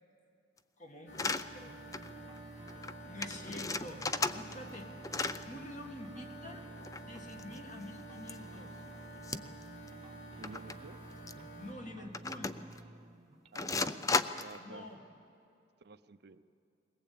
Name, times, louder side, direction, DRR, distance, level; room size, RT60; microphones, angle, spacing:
voice 1, 0.8-1.8 3.1-4.1 4.3-4.9 5.4-6.7 7.0-8.8 11.6-12.6 14.6-15.0, left 1 dB, 40° left, 4 dB, 2.0 m, -47 dB
sound 1, 1.1-11.8, right 1 dB, 60° left, 3.1 m, -50 dB
sound 2, 1.1-1.4 1.9-2.1 2.4-2.5 2.7-2.9 3.2-4.8 5.0-5.4 6.8-7.8 8.3-8.4 9.2-9.6 9.9-10.0 10.4-10.7 11.3-11.4 12.1-12.8 13.6-14.6, left 3 dB, 20° left, 0.5 m, -35 dB
sound 3, 1.1-15.2, right 1 dB, 30° right, 1.0 m, -53 dB
voice 2, 10.4-11.0 13.5-14.0 14.4-14.9 15.8-16.4, right 3 dB, 60° right, 12 dB, 0.6 m, -51 dB
21.5 x 18.5 x 8.7 m, 2.6 s
head